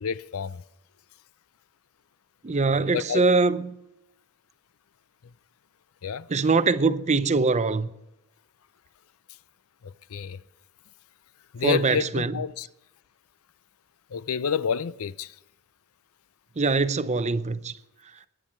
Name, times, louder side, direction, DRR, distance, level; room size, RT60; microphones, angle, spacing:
voice 1, 0.0-0.6 2.9-3.2 6.0-6.3 9.8-10.4 11.5-12.7 14.1-15.3, left 7 dB, 70° left, 0.5 m, -29 dB
voice 2, 2.4-3.8 6.3-7.9 11.6-12.4 16.6-17.7, right 3 dB, 30° right, 0.6 m, -23 dB
21.0 x 10.0 x 4.4 m
head